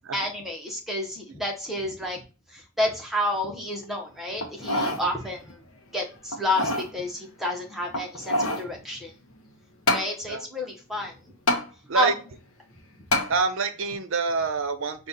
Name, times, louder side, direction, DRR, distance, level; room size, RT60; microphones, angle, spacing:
voice 1, 0.1-2.2 2.5-5.6 5.9-9.1 9.9-11.1 11.9-12.1, left 1 dB, ahead, 0 dB, 0.9 m, -30 dB
sound 1, 4.4-5.0 5.5-5.6 6.3-6.9 7.9-8.7 9.9-10.1 11.5-11.6 13.1-13.3 13.9-14.0, left 1 dB, 70° left, 0.8 m, -25 dB
voice 2, 13.3-15.1, right 4 dB, 60° right, 9 dB, 0.6 m, -26 dB
5.1 x 2.4 x 4.0 m, 0.32 s
head